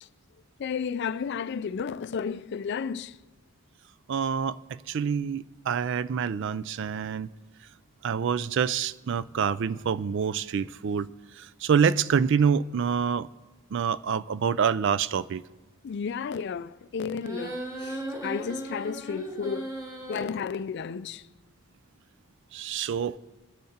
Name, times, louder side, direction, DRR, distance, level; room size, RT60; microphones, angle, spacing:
voice 1, 0.6-3.2 15.8-19.7 20.1-21.2, left 6 dB, 55° left, 0.3 m, -32 dB
voice 2, 4.1-7.3 8.0-11.1 11.4-13.3 13.7-15.4 22.5-23.2, right 7 dB, 55° right, 0.3 m, -26 dB
sound 1, 17.2-20.2, right 1 dB, 15° right, 1.4 m, -36 dB
22.0 x 10.0 x 2.8 m
head